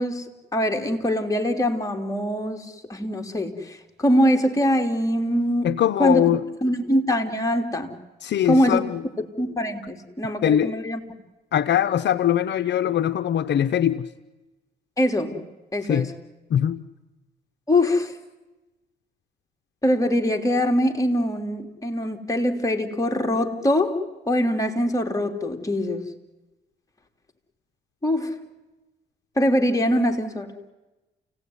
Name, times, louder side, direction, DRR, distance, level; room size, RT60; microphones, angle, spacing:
voice 1, 0.0-6.2 6.6-7.9 8.4-8.9 9.4-11.0 15.0-15.4 15.7-16.1 17.7-18.1 19.8-24.0 24.3-26.1 28.0-28.3 29.4-30.5, equal, 15° left, 3 dB, 3.3 m, -23 dB
voice 2, 5.6-6.4 8.2-9.0 10.4-10.7 11.5-14.1 15.8-16.1 16.5-16.8, left 10 dB, 65° left, 12 dB, 0.9 m, -21 dB
29.5 x 17.5 x 9.8 m, 1.1 s
cardioid pair, 90°, 20 cm